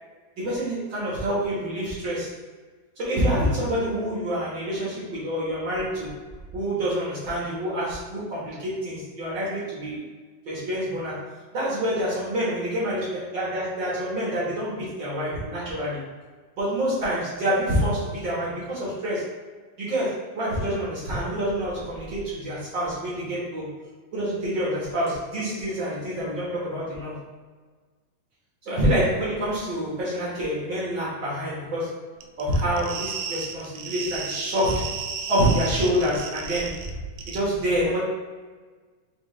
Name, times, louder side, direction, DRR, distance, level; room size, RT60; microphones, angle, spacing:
voice 1, 0.4-2.3 3.0-6.1 6.5-10.0 10.4-16.0 16.6-19.3 19.8-23.8 24.1-27.1 28.6-35.0 35.3-36.9 37.3-38.0, equal, 55° right, -7 dB, 1.2 m, -27 dB
sound 1, 32.2-36.9 37.2-37.4, right 6 dB, 80° right, 1.9 m, -34 dB
6.9 x 2.4 x 3.2 m, 1.4 s
omnidirectional pair, 3.9 m